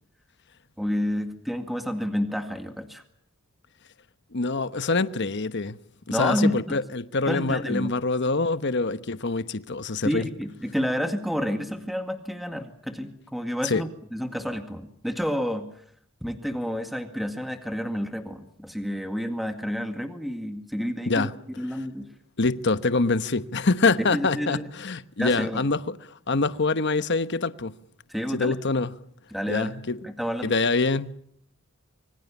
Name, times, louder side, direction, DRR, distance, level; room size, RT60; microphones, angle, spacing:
voice 1, 0.8-3.0 6.1-6.8 7.3-7.9 10.0-15.8 16.2-21.3 21.6-22.1 24.1-24.7 25.2-25.6 28.1-28.6 29.3-29.7 30.0-30.6, equal, ahead, 2.0 m, -29 dB
voice 2, 4.3-5.8 6.1-10.3 13.6-13.8 21.1-21.3 22.4-25.9 26.3-27.7 28.3-28.9 29.5-30.0 30.4-31.1, left 3 dB, 55° left, 1.1 m, -25 dB
26.0 x 24.0 x 7.2 m
head